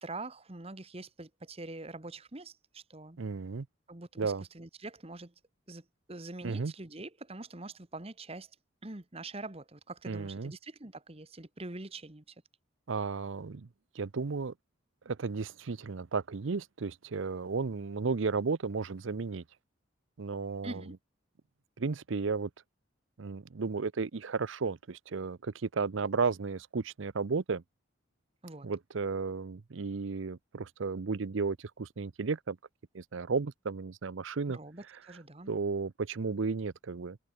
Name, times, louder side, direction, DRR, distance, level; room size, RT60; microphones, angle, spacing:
voice 1, 0.0-3.2 3.9-5.3 5.7-8.5 8.8-12.3 20.6-20.9 28.4-28.7 34.5-35.5, right 2 dB, 30° right, 1.4 m, -44 dB
voice 2, 3.2-3.7 4.2-4.4 6.4-6.7 10.1-10.5 12.9-13.7 14.0-14.5 15.1-19.4 20.2-20.8 21.8-22.5 23.2-27.6 28.6-32.6 32.9-34.6 35.5-37.2, right 4 dB, 70° right, 0.6 m, -33 dB
head